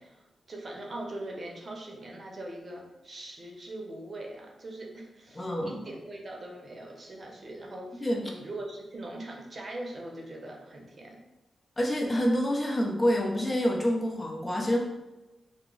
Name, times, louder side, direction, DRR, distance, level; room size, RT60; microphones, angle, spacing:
voice 1, 0.0-11.2, right 1 dB, 50° right, 0 dB, 0.6 m, -41 dB
voice 2, 5.3-5.7 8.0-8.2 11.8-14.8, equal, 30° left, -1 dB, 0.6 m, -27 dB
2.8 x 2.0 x 3.7 m, 1.0 s
cardioid pair, 65°, 0 cm